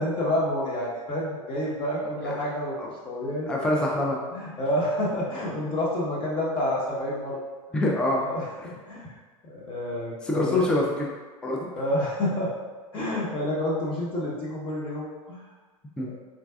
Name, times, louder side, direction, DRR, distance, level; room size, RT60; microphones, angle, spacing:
voice 1, 0.0-2.8 3.0-3.6 4.3-7.4 8.2-9.1 9.4-10.8 11.7-12.5 12.9-15.4 16.0-16.2, left 1 dB, 30° left, -6 dB, 1.1 m, -29 dB
voice 2, 3.5-4.2 7.7-8.2 10.2-11.7 16.0-16.1, left 1 dB, 5° left, -2 dB, 0.4 m, -25 dB
4.0 x 2.3 x 2.3 m, 1.3 s
hypercardioid pair, 115°, 18 cm